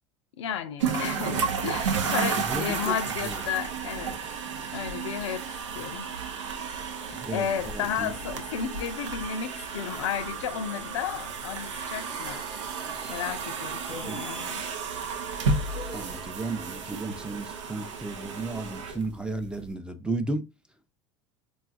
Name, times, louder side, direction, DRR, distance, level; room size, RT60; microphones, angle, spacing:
voice 1, 0.4-4.2 4.7-5.4 5.7-6.1 7.1-12.4 13.1-14.6, left 9 dB, 75° left, 0.4 m, -33 dB
sound 1, 0.8-19.7, right 5 dB, 85° right, 0.5 m, -33 dB
voice 2, 2.3-3.0 3.2-3.4 7.1-8.1 13.9-14.2 15.9-20.4, right 2 dB, 5° right, 0.5 m, -34 dB
sound 2, 11.9-17.6, right 3 dB, 30° right, 0.9 m, -46 dB
3.9 x 2.3 x 2.4 m
hypercardioid pair, 80°, 15 cm